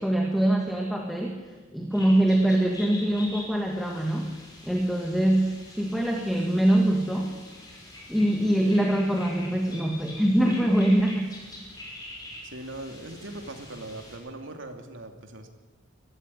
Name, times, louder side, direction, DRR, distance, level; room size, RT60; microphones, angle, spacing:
voice 1, 0.0-1.4 1.7-4.4 4.6-7.4 8.1-11.3, right 1 dB, ahead, 0 dB, 1.8 m, -23 dB
sound 1, 1.9-14.2, left 1 dB, 20° left, 5.8 m, -45 dB
voice 2, 12.4-15.5, right 1 dB, 70° right, 4 dB, 2.6 m, -40 dB
22.5 x 13.5 x 9.9 m, 1.3 s
head